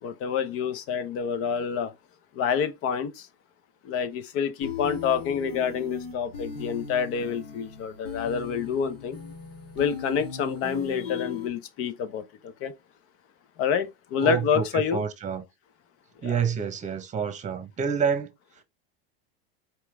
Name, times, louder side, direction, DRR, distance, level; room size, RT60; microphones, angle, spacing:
voice 1, 0.0-1.9 2.3-3.3 3.8-9.2 9.8-12.7 13.6-15.0 16.2-16.4, left 7 dB, 45° left, 0.9 m, -28 dB
sound 1, 4.6-11.5, left 6 dB, 75° left, 2.5 m, -38 dB
voice 2, 14.2-15.4 16.2-18.3, right 7 dB, 25° right, 1.2 m, -28 dB
4.6 x 3.1 x 3.5 m
supercardioid pair, 110°, 31 cm